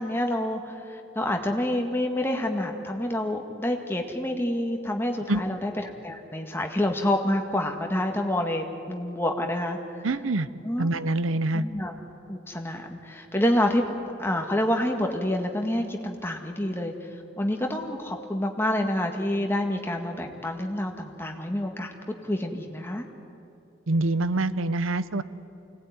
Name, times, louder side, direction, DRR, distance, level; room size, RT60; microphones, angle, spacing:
voice 1, 0.0-10.1 10.6-10.9 11.5-11.9 12.3-13.8 14.2-21.9 22.2-23.0, left 1 dB, 10° left, 3 dB, 1.8 m, -28 dB
voice 2, 10.0-10.5 10.8-11.6 23.9-25.2, right 2 dB, 85° right, 15 dB, 0.8 m, -25 dB
24.5 x 18.5 x 9.6 m, 2.8 s
head